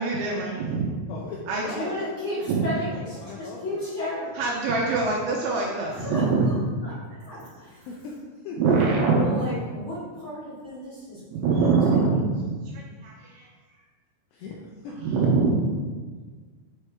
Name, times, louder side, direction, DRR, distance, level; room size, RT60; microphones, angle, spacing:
voice 1, 0.0-0.9 1.5-1.7 2.5-2.7 4.4-6.6 8.6-9.3 11.3-13.5 15.0-15.6, right 4 dB, 80° right, -3 dB, 2.8 m, -24 dB
voice 2, 1.1-3.8 7.9-8.1 8.4-8.6 14.3-14.9, left 4 dB, 85° left, -2 dB, 2.4 m, -39 dB
voice 3, 1.7-4.3 5.9-6.6 6.8-6.9 7.2-7.9 9.1-12.2, left 1 dB, 60° left, -11 dB, 1.3 m, -34 dB
7.5 x 5.5 x 3.4 m, 1.5 s
omnidirectional pair, 5.8 m